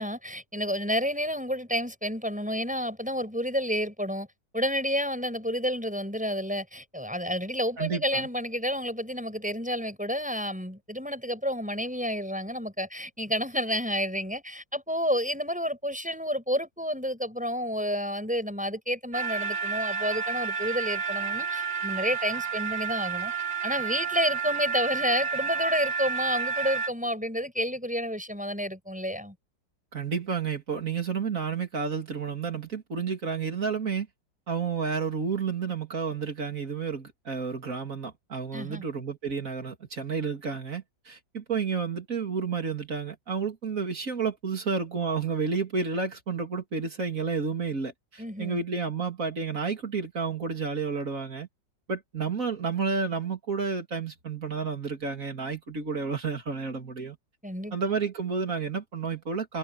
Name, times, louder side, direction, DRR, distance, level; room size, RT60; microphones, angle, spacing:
voice 1, 0.0-4.3 4.5-23.3 23.6-29.3 38.5-38.8 48.2-48.6 57.4-57.7, equal, 5° right, 6.8 m, -30 dB
voice 2, 7.8-8.3 29.9-34.1 34.5-51.5 51.9-57.2 57.7-59.6, right 5 dB, 45° right, 3.4 m, -31 dB
sound 1, 19.1-26.9, right 6 dB, 60° right, 3.2 m, -30 dB
omnidirectional pair, 2.0 m